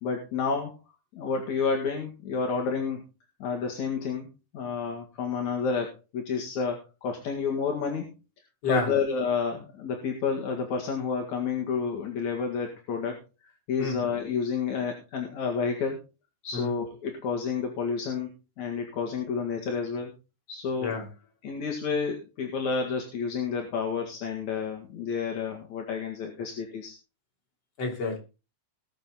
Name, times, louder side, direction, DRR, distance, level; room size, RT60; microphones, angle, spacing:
voice 1, 0.0-0.7 1.1-3.0 3.4-8.1 8.7-13.2 13.7-16.0 16.4-18.3 18.6-20.1 20.5-20.9 21.4-26.9, left 5 dB, 75° left, 3.4 m, -30 dB
voice 2, 27.8-28.2, left 4 dB, 55° left, 4.3 m, -29 dB
20.0 x 7.4 x 3.9 m
omnidirectional pair, 3.4 m